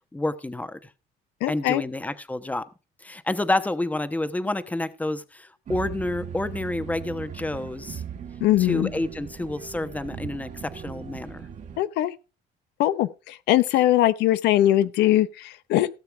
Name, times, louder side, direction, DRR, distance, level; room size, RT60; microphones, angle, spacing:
voice 1, 0.1-0.8 1.5-2.6 3.0-8.0 8.6-11.5, left 2 dB, 10° left, 1.0 m, -29 dB
voice 2, 1.4-1.8 8.4-8.9 11.8-12.1 12.8-15.9, left 14 dB, 85° left, 0.7 m, -21 dB
sound 1, 5.7-11.8, right 8 dB, 45° right, 1.9 m, -38 dB
17.0 x 6.8 x 4.6 m
cardioid pair, 110°, 17 cm